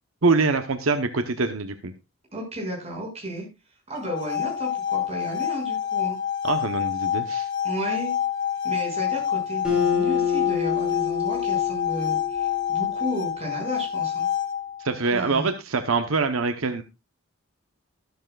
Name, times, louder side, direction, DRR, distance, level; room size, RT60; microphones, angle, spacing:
voice 1, 0.2-1.9 6.4-7.5 14.8-16.8, right 4 dB, 70° right, 8 dB, 0.9 m, -24 dB
voice 2, 2.3-3.5 3.9-6.2 7.6-8.1 8.6-14.3 15.1-15.5, equal, 30° right, -1 dB, 6.2 m, -33 dB
sound 1, 4.0-14.9, left 9 dB, 55° left, 2.1 m, -27 dB
Acoustic guitar, 9.6-13.1, left 7 dB, 5° right, 6.2 m, -27 dB
13.5 x 13.0 x 2.4 m, 0.25 s
head